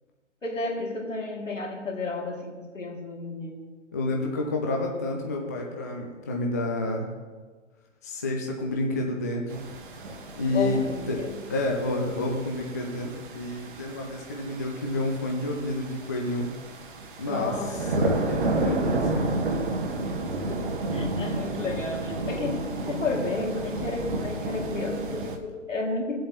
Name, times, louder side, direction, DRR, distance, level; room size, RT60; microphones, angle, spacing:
voice 1, 0.4-3.6 10.5-11.4 17.3-18.0 20.5-20.6 20.9-26.2, left 3 dB, 75° left, -1 dB, 2.4 m, -32 dB
voice 2, 3.9-7.1 8.0-9.6 10.3-10.8 11.1-11.2 11.5-16.5 17.2-19.4, left 2 dB, 15° left, 0 dB, 0.4 m, -29 dB
sound 1, 9.5-25.4, right 2 dB, 40° right, 1.2 m, -31 dB
18.5 x 7.5 x 2.9 m, 1.4 s
figure-of-eight pair, 125°, 38 cm